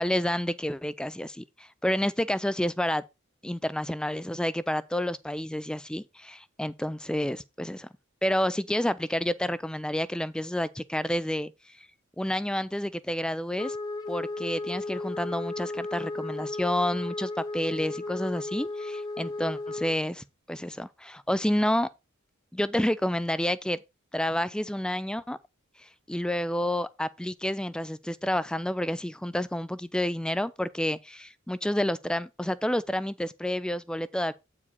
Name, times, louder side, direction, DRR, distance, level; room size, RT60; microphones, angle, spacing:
voice 1, 0.0-3.0 3.4-7.9 8.2-11.5 12.2-13.8 14.1-21.9 22.5-23.8 24.1-25.4 26.1-34.3, left 1 dB, 5° left, 0.4 m, -29 dB
Wind instrument woodwind instrument, 13.6-20.0, left 2 dB, 20° left, 0.8 m, -35 dB
8.6 x 4.8 x 4.1 m
head